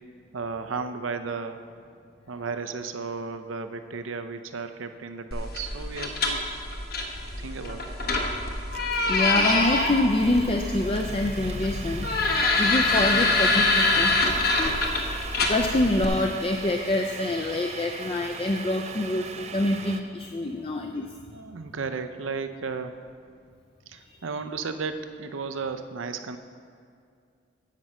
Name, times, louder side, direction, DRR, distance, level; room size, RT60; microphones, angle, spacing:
voice 1, 0.3-1.6 2.3-6.4 7.4-8.1 21.3-23.0 23.9-26.4, right 4 dB, 85° right, 9 dB, 0.6 m, -34 dB
sound 1, 5.3-16.1, left 2 dB, 50° left, 1.1 m, -25 dB
sound 2, 8.7-20.0, right 5 dB, 35° right, 0.4 m, -40 dB
voice 2, 9.1-14.8 15.3-21.1 24.1-24.2, left 2 dB, 30° left, 3 dB, 0.4 m, -26 dB
10.5 x 5.3 x 7.5 m, 2.2 s
head